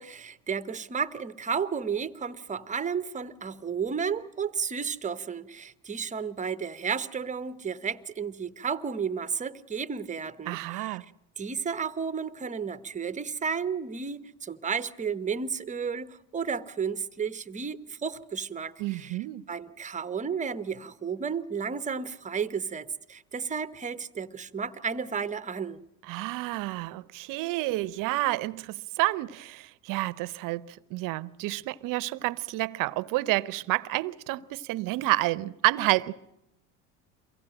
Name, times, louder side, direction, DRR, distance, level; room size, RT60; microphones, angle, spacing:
voice 1, 0.0-11.0 11.4-19.2 19.5-25.8, right 6 dB, 20° right, 0.9 m, -32 dB
voice 2, 10.5-11.0 18.8-19.4 26.1-36.1, right 19 dB, 60° right, 0.7 m, -29 dB
23.5 x 16.0 x 8.9 m
supercardioid pair, 100°, 36 cm